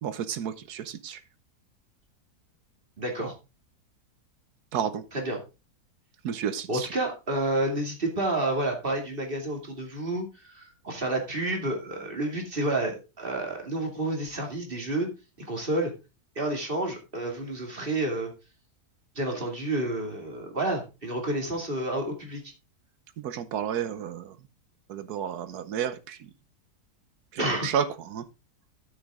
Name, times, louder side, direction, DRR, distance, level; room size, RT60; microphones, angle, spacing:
voice 1, 0.0-1.2 4.7-5.0 6.2-6.9 23.2-24.3 24.9-26.2 27.3-28.2, right 8 dB, 75° right, 1.4 m, -31 dB
voice 2, 3.0-3.3 5.1-5.4 6.7-15.1 15.5-15.9 16.4-18.3 19.2-22.4 27.4-27.7, right 2 dB, 35° right, 2.6 m, -30 dB
9.9 x 8.3 x 3.6 m
omnidirectional pair, 1.7 m